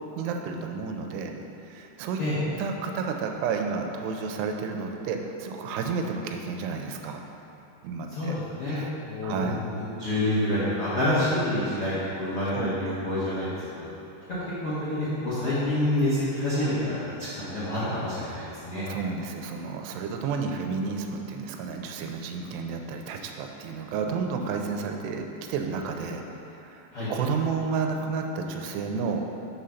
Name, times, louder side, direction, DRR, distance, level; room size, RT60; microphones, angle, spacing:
voice 1, 0.2-1.3 1.6-2.2 2.6-7.2 7.8-8.4 8.7-8.9 9.2-9.6 12.5-12.8 18.2-18.4 18.9-26.2 26.5-29.4, right 5 dB, 90° right, 3 dB, 2.7 m, -31 dB
voice 2, 8.1-8.8 9.0-9.6 10.0-13.5 13.7-13.9 14.6-18.9 26.9-27.1, left 1 dB, 65° left, -13 dB, 1.4 m, -27 dB
6.1 x 5.1 x 5.7 m, 2.9 s
omnidirectional pair, 4.7 m